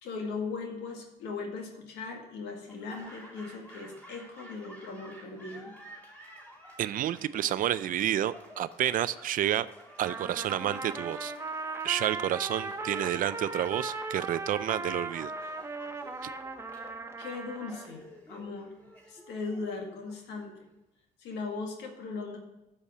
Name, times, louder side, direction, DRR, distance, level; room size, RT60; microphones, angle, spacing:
voice 1, 0.0-5.7 17.2-18.0 18.3-18.7 19.1-20.5 21.2-22.4, left 4 dB, 85° left, 2 dB, 2.0 m, -38 dB
Laughter / Applause, 2.7-20.7, equal, 10° left, 2.9 m, -52 dB
voice 2, 6.8-9.7 10.0-11.3 11.8-15.3 16.2-16.3, right 11 dB, 55° right, 16 dB, 0.5 m, -30 dB
Trumpet, 10.0-17.9, right 3 dB, 15° right, 0.7 m, -38 dB
8.4 x 6.4 x 7.3 m, 0.91 s
cardioid pair, 110°, 17 cm